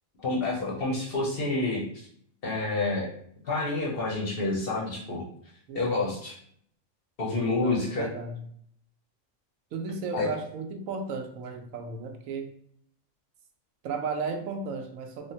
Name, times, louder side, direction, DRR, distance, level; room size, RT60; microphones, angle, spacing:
voice 1, 0.2-2.1 2.4-3.1 3.4-5.3 5.7-6.4 7.2-8.1 10.1-10.3, left 2 dB, 55° left, -4 dB, 0.7 m, -28 dB
voice 2, 5.7-6.2 7.6-8.4 9.7-12.5 13.8-15.3, right 4 dB, 75° right, 4 dB, 1.0 m, -34 dB
3.4 x 2.1 x 2.7 m, 0.65 s
omnidirectional pair, 1.4 m